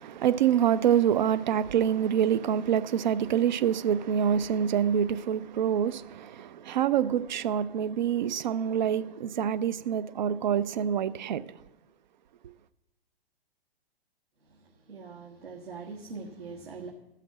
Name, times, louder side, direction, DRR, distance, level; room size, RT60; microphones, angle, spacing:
voice 1, 0.0-11.6, right 9 dB, 50° right, 0.5 m, -26 dB
voice 2, 14.4-16.9, right 4 dB, 75° right, 1.6 m, -43 dB
13.5 x 5.8 x 7.2 m
figure-of-eight pair, 120°, 31 cm